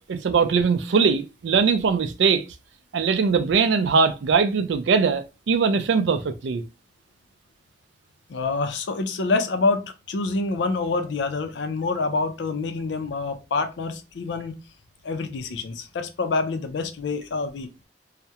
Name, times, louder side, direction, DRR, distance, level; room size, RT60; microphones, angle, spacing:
voice 1, 0.1-2.4 2.9-6.6, right 5 dB, 85° right, 0.4 m, -21 dB
voice 2, 8.3-14.6 15.0-17.9, left 3 dB, 80° left, 0.4 m, -27 dB
2.3 x 2.0 x 2.7 m
head